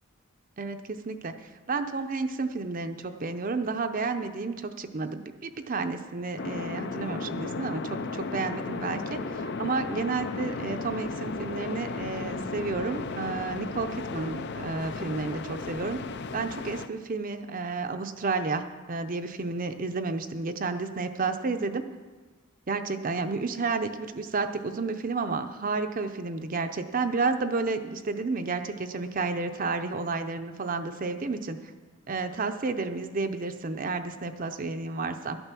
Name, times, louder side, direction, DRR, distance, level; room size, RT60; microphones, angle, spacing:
voice 1, 0.6-1.3 1.7-16.0 16.3-21.8 22.7-31.7 32.1-35.4, right 4 dB, 40° right, 7 dB, 0.6 m, -31 dB
sound 1, 6.4-16.9, left 4 dB, 50° left, 0.5 m, -35 dB
12.0 x 9.0 x 6.1 m, 1.3 s
head